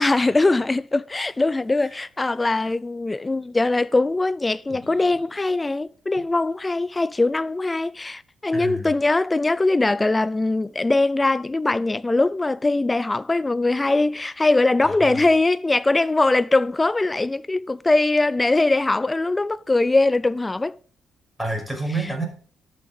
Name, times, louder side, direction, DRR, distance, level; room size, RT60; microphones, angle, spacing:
voice 1, 0.0-20.7, left 2 dB, 20° left, 0.5 m, -21 dB
voice 2, 8.5-8.9 14.8-15.2 21.4-22.2, right 2 dB, ahead, 6.1 m, -30 dB
12.0 x 7.1 x 5.2 m
cardioid pair, 90°, 0 cm